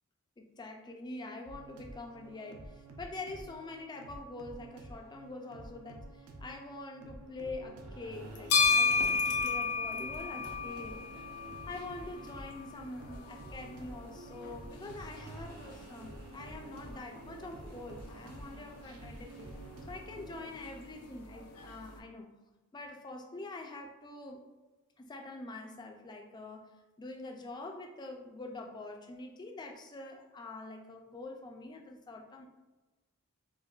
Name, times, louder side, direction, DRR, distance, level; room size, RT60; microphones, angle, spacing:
voice 1, 0.4-11.3 11.7-19.5 19.9-22.3 22.7-24.4 25.0-32.5, left 2 dB, 20° left, 3 dB, 0.3 m, -45 dB
sound 1, 1.5-20.5, right 2 dB, 70° right, 0.4 m, -49 dB
sound 2, 8.1-22.0, left 4 dB, 80° left, 0.5 m, -35 dB
4.5 x 2.2 x 2.3 m, 1.2 s
head